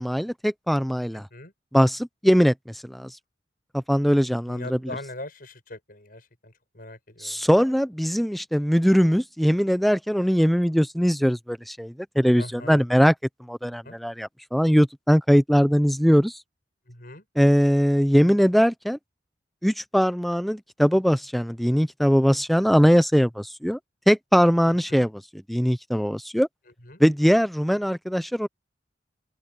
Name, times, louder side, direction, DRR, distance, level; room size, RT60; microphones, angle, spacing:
voice 1, 0.0-1.3 1.7-2.5 2.8-3.1 3.7-4.8 7.2-13.1 13.5-16.4 17.4-19.0 19.6-23.8 24.1-26.5 27.0-28.5, equal, ahead, 0.7 m, -21 dB
voice 2, 1.1-1.5 4.2-7.4 12.4-12.8 13.6-14.0 16.9-17.3 24.6-25.1 26.8-27.0, left 1 dB, 50° left, 7.3 m, -41 dB
open air
head